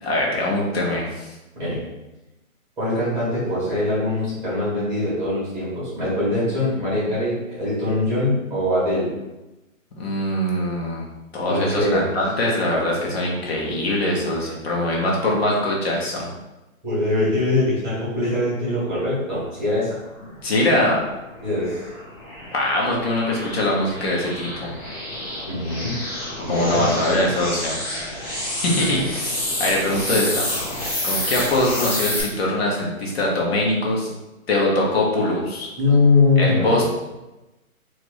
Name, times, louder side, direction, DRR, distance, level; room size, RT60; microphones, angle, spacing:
voice 1, 0.0-1.3 10.0-11.1 11.3-16.3 20.4-21.0 22.5-24.7 26.5-27.8 28.5-30.4 31.0-34.1 34.5-35.7 36.4-36.8, left 1 dB, 45° left, -3 dB, 1.2 m, -22 dB
voice 2, 2.8-9.1 11.5-12.1 16.8-20.0 21.4-21.8 25.5-25.9 26.4-27.2 35.7-36.8, left 2 dB, 5° right, -10 dB, 1.3 m, -22 dB
sound 1, 21.0-32.2, left 1 dB, 15° left, 0.8 m, -29 dB
4.5 x 2.6 x 3.1 m, 1.0 s
hypercardioid pair, 165°, 42 cm